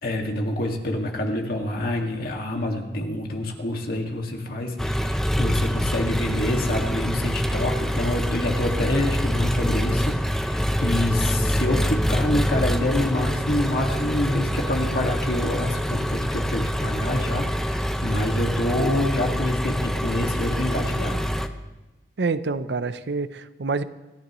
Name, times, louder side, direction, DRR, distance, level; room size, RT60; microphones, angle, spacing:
voice 1, 0.0-21.3, left 1 dB, 60° left, 1 dB, 2.0 m, -27 dB
Engine, 4.8-21.5, equal, 5° left, 0.6 m, -25 dB
voice 2, 22.2-23.8, right 4 dB, 70° right, 13 dB, 0.6 m, -27 dB
27.5 x 11.5 x 3.1 m, 1.1 s
head